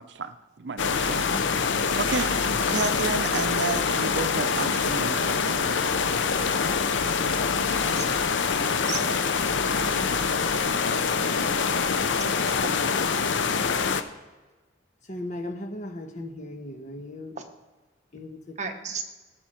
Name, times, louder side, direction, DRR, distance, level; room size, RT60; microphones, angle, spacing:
voice 1, 0.0-1.4 2.0-5.8, right 4 dB, 70° right, 11 dB, 0.6 m, -32 dB
sound 1, 0.8-14.0, left 5 dB, 90° left, 0.7 m, -25 dB
voice 2, 8.9-9.3 9.8-10.1 12.4-12.8 18.6-19.0, right 5 dB, 40° right, 5 dB, 1.2 m, -34 dB
voice 3, 15.1-17.3 18.1-18.6, left 1 dB, 40° left, 5 dB, 1.2 m, -37 dB
18.0 x 7.1 x 4.4 m, 1.2 s
head